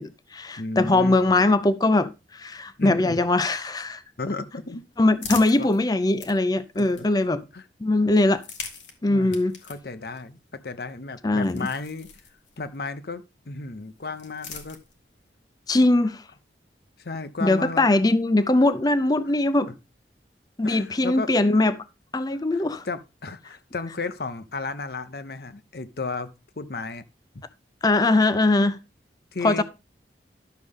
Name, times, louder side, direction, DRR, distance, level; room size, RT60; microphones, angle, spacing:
voice 1, 0.0-4.0 5.0-7.4 7.8-8.4 9.0-9.6 11.2-11.7 15.7-16.2 17.4-19.7 20.6-21.8 22.1-22.9 27.8-28.8 29.4-29.6, left 2 dB, 20° left, 0.5 m, -21 dB
voice 2, 0.6-1.2 2.8-3.2 4.2-4.8 5.6-5.7 6.7-7.1 7.5-7.6 9.1-9.4 9.6-12.1 12.6-14.8 17.0-17.9 19.7-19.8 20.6-21.3 22.3-27.0 29.3-29.6, left 3 dB, 60° left, 0.8 m, -34 dB
sound 1, 4.6-7.4 8.2-12.8 13.8-15.3, left 6 dB, 85° left, 1.9 m, -43 dB
11.5 x 6.6 x 3.6 m
head